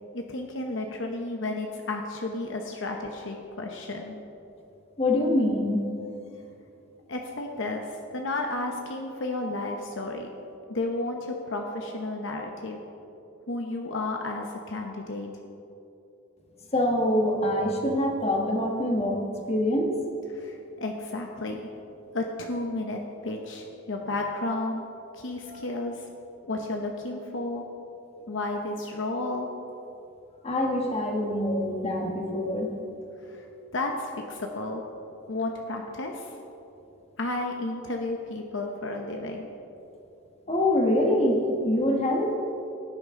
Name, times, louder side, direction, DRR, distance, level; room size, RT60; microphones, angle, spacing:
voice 1, 0.1-4.2 7.1-10.3 10.7-12.8 13.5-15.3 20.3-21.6 22.1-24.8 25.1-26.1 26.5-27.6 28.3-29.5 33.3-33.4 33.7-34.8 35.3-36.3 37.2-39.5, left 2 dB, 60° left, 2 dB, 0.9 m, -32 dB
voice 2, 5.0-5.8 16.7-19.2 19.5-20.0 25.4-25.6 30.4-32.8 40.5-42.3, left 1 dB, 30° left, 1 dB, 1.5 m, -25 dB
17.5 x 9.8 x 3.7 m, 2.8 s
head